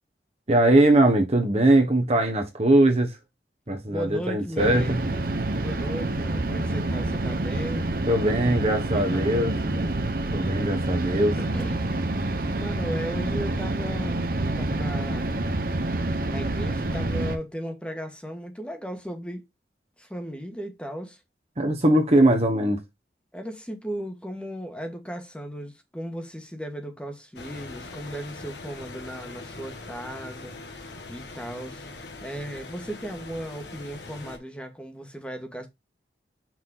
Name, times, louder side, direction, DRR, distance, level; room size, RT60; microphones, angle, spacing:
voice 1, 0.5-3.2 3.7-5.0 8.1-9.5 10.3-11.4 21.6-22.8, right 1 dB, 35° right, 1.2 m, -21 dB
voice 2, 3.9-5.0 5.6-9.9 11.3-11.9 12.5-14.2 14.6-15.3 16.3-19.5 20.0-21.2 22.1-22.3 23.3-31.8 32.2-35.7, equal, 5° left, 1.5 m, -36 dB
sound 1, 4.6-17.4, right 2 dB, 55° right, 0.9 m, -27 dB
sound 2, 27.4-34.4, left 3 dB, 80° left, 1.7 m, -42 dB
6.0 x 4.3 x 3.8 m
head